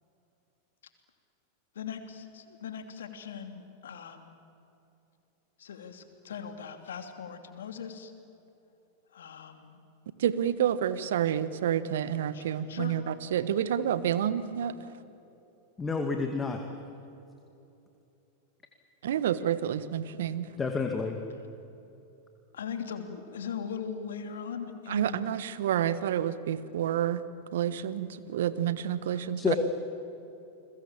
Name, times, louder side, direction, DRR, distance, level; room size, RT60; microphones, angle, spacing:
voice 1, 1.7-4.3 5.6-8.1 9.1-9.8 12.3-12.9 21.3-21.5 22.5-25.3 29.1-29.3, left 7 dB, 75° left, 7 dB, 2.8 m, -40 dB
voice 2, 10.2-14.7 19.0-20.5 24.9-27.2 27.5-29.5, right 10 dB, 70° right, 14 dB, 1.3 m, -29 dB
voice 3, 15.8-16.6 20.6-21.2 29.4-29.6, left 4 dB, 15° left, 4 dB, 2.2 m, -29 dB
30.0 x 21.5 x 7.4 m, 2.8 s
hypercardioid pair, 95°, 0 cm